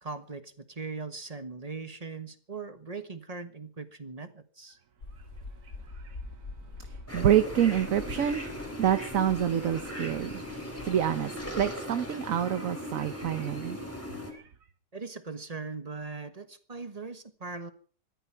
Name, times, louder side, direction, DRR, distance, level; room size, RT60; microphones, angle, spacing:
voice 1, 0.0-4.8 14.9-17.7, right 4 dB, 25° right, 9 dB, 1.4 m, -40 dB
sailing-raising, 5.0-11.6, left 3 dB, 50° left, 2.2 m, -46 dB
sound 1, 7.1-14.3, equal, 10° left, 4.1 m, -38 dB
voice 2, 7.1-8.4 8.8-10.4 10.8-13.8 14.3-14.4, right 10 dB, 60° right, 10 dB, 1.3 m, -27 dB
21.5 x 14.5 x 4.7 m, 0.43 s
omnidirectional pair, 1.7 m